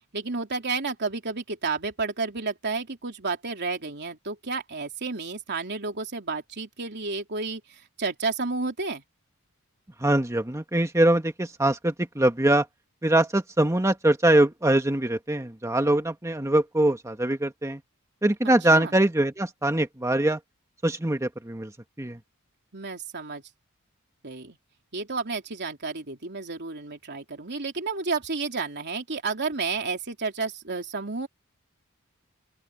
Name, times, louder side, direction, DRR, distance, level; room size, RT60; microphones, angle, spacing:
voice 1, 0.1-7.6 8.0-9.0 18.7-18.9 22.7-23.4 24.2-24.6 24.9-31.3, right 4 dB, 50° right, 3.3 m, -31 dB
voice 2, 10.0-12.6 13.0-17.8 18.2-20.4 20.8-21.7 22.0-22.2, right 1 dB, 15° right, 1.4 m, -23 dB
open air
head